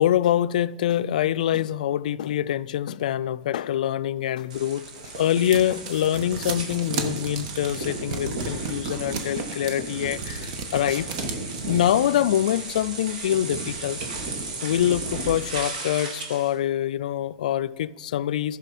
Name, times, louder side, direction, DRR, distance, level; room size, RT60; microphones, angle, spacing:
voice 1, 0.0-4.9 5.2-11.1 11.7-14.0 14.6-18.6, left 11 dB, 80° left, 0.3 m, -25 dB
sound 1, 4.5-16.5, right 3 dB, 80° right, 2.1 m, -34 dB
sound 2, 4.6-11.8, right 5 dB, 55° right, 1.3 m, -34 dB
15.0 x 6.2 x 4.1 m
supercardioid pair, 145°, 4 cm